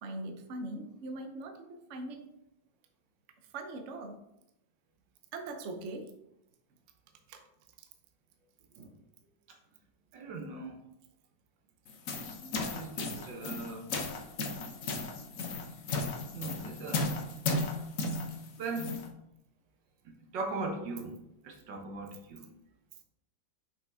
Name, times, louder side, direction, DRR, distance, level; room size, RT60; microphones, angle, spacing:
voice 1, 0.0-2.3 3.5-4.2 5.3-6.1 7.3-7.4, right 2 dB, 55° right, 4 dB, 0.9 m, -41 dB
voice 2, 10.1-10.8 12.7-13.9 16.3-17.2 18.6-19.0 20.1-22.5, right 3 dB, 75° right, 2 dB, 1.8 m, -39 dB
sound 1, 11.9-19.1, left 3 dB, 55° left, 1.1 m, -35 dB
6.0 x 5.6 x 3.6 m, 0.83 s
omnidirectional pair, 2.0 m